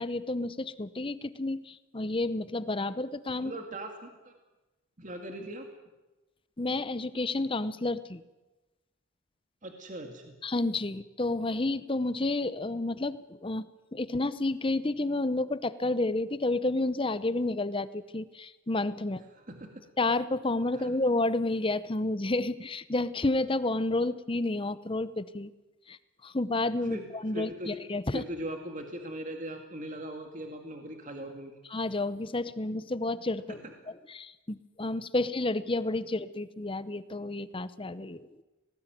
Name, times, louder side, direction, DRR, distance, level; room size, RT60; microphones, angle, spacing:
voice 1, 0.0-3.5 6.6-8.2 10.4-13.7 13.9-19.2 20.0-25.5 25.9-26.0 26.2-28.2 31.7-33.6 34.1-38.3, left 2 dB, 25° left, 15 dB, 0.7 m, -30 dB
voice 2, 3.4-4.3 5.0-5.7 9.6-10.4 19.3-19.7 20.7-20.9 26.8-27.8 28.1-31.5 33.5-33.6, right 1 dB, 35° right, 4 dB, 2.0 m, -40 dB
19.0 x 18.5 x 9.1 m, 1.1 s
head